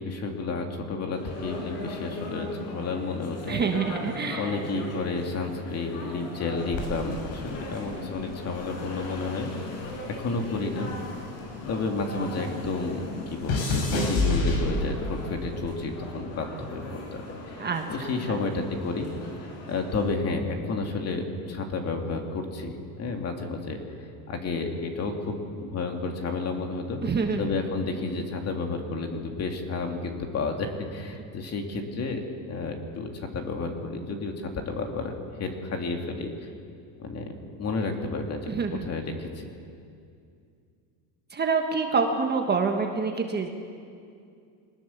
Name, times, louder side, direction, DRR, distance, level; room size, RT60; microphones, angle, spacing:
voice 1, 0.0-3.6 4.3-9.5 10.2-10.9 11.7-16.8 17.1-17.6 17.9-19.1 19.7-23.8 24.3-27.0 27.4-32.2 32.5-34.3 34.7-35.1 35.4-36.3 37.0-37.3 37.6-38.5 38.8-39.5, left 3 dB, 35° left, 3 dB, 2.5 m, -31 dB
sound 1, 1.1-20.1, left 1 dB, 85° left, 5.8 m, -39 dB
voice 2, 3.5-4.5 17.6-18.4 27.0-27.4 38.5-38.9 41.3-43.5, right 5 dB, 20° right, 3 dB, 1.4 m, -27 dB
sound 2, 6.7-9.2 9.5-12.2 12.4-15.2 16.0-16.3, left 2 dB, 55° left, 5.4 m, -29 dB
22.5 x 19.0 x 7.2 m, 2.4 s
cardioid pair, 150°, 46 cm